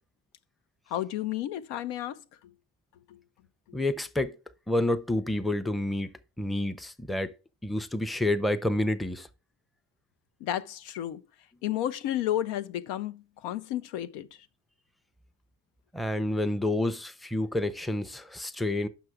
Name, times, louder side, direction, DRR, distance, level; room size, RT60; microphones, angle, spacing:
voice 1, 0.9-2.2 3.1-3.2 10.4-11.2 11.6-14.5, left 12 dB, 85° left, 0.5 m, -32 dB
voice 2, 3.7-4.4 4.7-7.3 7.6-9.3 15.9-18.9, left 1 dB, ahead, 0.5 m, -29 dB
5.9 x 5.4 x 4.7 m
hypercardioid pair, 50°, 40 cm